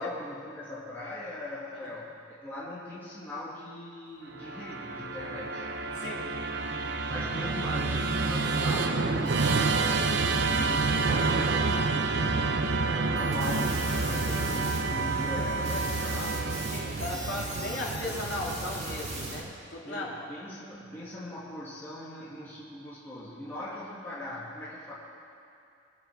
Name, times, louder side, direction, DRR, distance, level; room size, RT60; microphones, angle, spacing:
voice 1, 0.0-5.7 7.0-9.7 10.5-12.3 12.7-16.4 19.8-24.9, left 1 dB, 10° left, -9 dB, 1.8 m, -40 dB
Musical instrument, 4.3-19.7, right 3 dB, 60° right, 0.6 m, -29 dB
voice 2, 5.9-6.3 9.9-10.2 16.7-20.3, left 2 dB, 75° left, -3 dB, 2.4 m, -37 dB
sound 1, 13.2-19.4, right 2 dB, 35° right, 2.1 m, -40 dB
22.5 x 8.3 x 4.5 m, 2.6 s
head